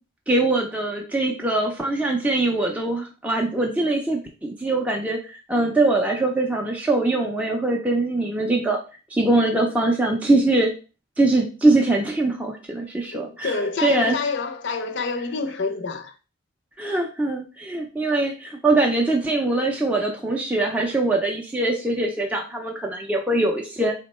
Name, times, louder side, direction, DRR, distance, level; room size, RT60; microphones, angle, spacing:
voice 1, 0.3-8.8 9.1-10.7 11.2-14.2 16.8-23.9, right 2 dB, 5° right, 0.4 m, -22 dB
voice 2, 13.1-16.1, left 4 dB, 55° left, 0.5 m, -27 dB
3.6 x 2.1 x 4.1 m
head